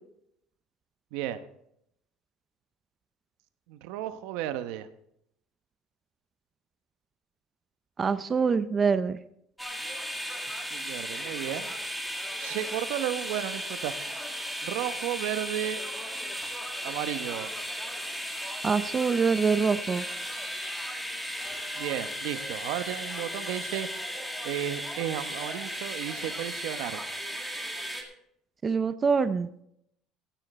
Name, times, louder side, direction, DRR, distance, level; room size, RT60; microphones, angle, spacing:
voice 1, 1.1-1.4 3.7-4.9 10.7-11.7 12.3-14.1 14.6-15.8 16.8-17.5 21.8-23.9 24.4-27.0, right 12 dB, 80° right, 11 dB, 1.0 m, -33 dB
voice 2, 8.0-9.2 18.6-20.0 28.6-29.5, right 5 dB, 25° right, 12 dB, 0.5 m, -25 dB
sound 1, 9.6-28.0, equal, ahead, 1.9 m, -35 dB
16.0 x 9.2 x 4.3 m, 0.75 s
cardioid pair, 150°, 0 cm